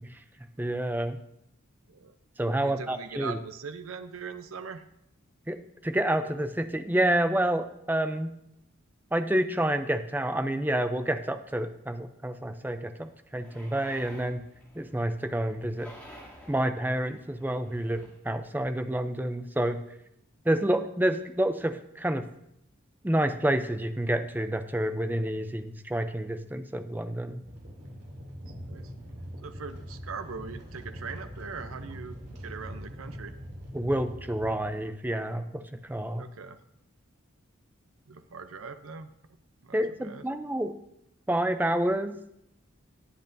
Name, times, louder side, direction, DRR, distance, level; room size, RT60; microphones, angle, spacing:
voice 1, 0.6-1.2 2.4-3.4 5.5-5.6 5.8-8.3 9.1-14.4 14.8-15.9 16.5-19.8 20.5-22.3 23.0-27.4 33.7-36.3 39.7-40.7 41.3-42.2, right 1 dB, 10° right, 8 dB, 0.5 m, -28 dB
voice 2, 2.6-4.8 28.5-28.9 29.4-33.3 36.1-36.6 38.1-39.1 39.6-40.2, right 5 dB, 90° right, 9 dB, 0.6 m, -41 dB
sound 1, 13.3-18.2, equal, 5° left, 2.8 m, -52 dB
sound 2, 27.4-34.6, equal, 55° right, 2.9 m, -42 dB
19.5 x 7.8 x 2.7 m, 0.78 s
head